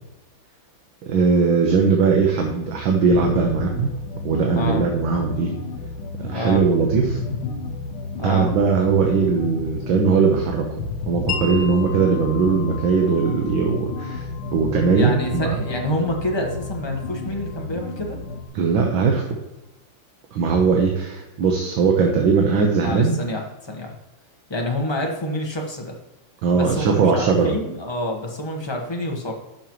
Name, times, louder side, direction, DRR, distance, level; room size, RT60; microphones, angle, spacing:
voice 1, 1.0-3.9 4.2-5.5 6.2-7.2 8.2-10.6 11.1-14.2 14.5-15.5 18.5-19.2 20.3-23.2 26.4-27.5, right 5 dB, 65° right, 1 dB, 1.7 m, -19 dB
sound 1, 3.1-18.5, left 3 dB, 80° left, 1.8 m, -32 dB
voice 2, 4.5-4.9 6.3-6.6 8.2-8.5 14.9-18.2 22.4-22.6 22.8-23.9 24.5-26.0 26.5-29.3, left 1 dB, 20° left, 1 dB, 0.7 m, -27 dB
Wind chime, 11.3-18.9, left 7 dB, 40° left, 1.4 m, -38 dB
10.5 x 6.1 x 3.0 m, 1.0 s
omnidirectional pair, 2.4 m